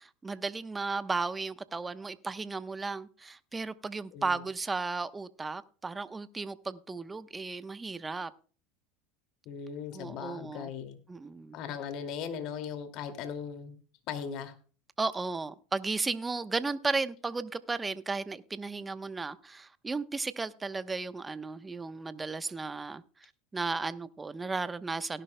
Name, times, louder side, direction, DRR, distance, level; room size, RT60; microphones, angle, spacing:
voice 1, 0.0-8.3 9.9-10.7 11.1-11.6 15.0-23.0 23.5-25.2, right 3 dB, 15° right, 0.9 m, -34 dB
voice 2, 4.1-4.4 9.5-11.0 11.5-13.8 14.1-14.5, left 7 dB, 60° left, 2.3 m, -38 dB
17.5 x 11.0 x 2.2 m
supercardioid pair, 100°, 0 cm